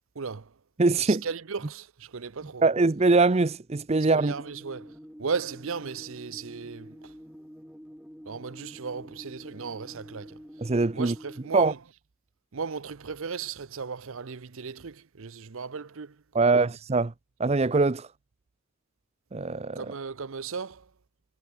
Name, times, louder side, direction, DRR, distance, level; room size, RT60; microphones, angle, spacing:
voice 1, 0.1-0.6 1.0-2.6 4.0-7.1 8.3-10.4 10.9-11.8 12.5-16.7 19.8-20.9, right 5 dB, 65° right, 0.7 m, -36 dB
voice 2, 0.8-1.2 2.6-4.3 10.6-11.1 11.5-11.7 16.3-17.1 17.4-18.1 19.3-19.8, right 3 dB, 30° right, 0.5 m, -22 dB
sound 1, 4.0-11.6, equal, 5° right, 5.9 m, -47 dB
head